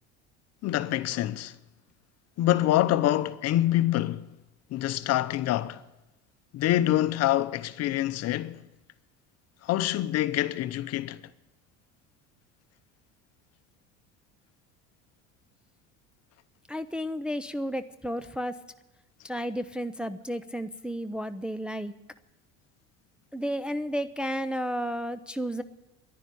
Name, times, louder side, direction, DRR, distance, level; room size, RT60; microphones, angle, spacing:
voice 1, 0.6-1.5 2.4-4.3 4.7-5.8 6.5-8.6 9.6-11.2, left 14 dB, 55° left, 0.8 m, -26 dB
voice 2, 16.7-18.6 19.2-21.9 23.3-25.6, equal, 5° right, 0.5 m, -32 dB
10.5 x 9.9 x 9.9 m
supercardioid pair, 100°, 31 cm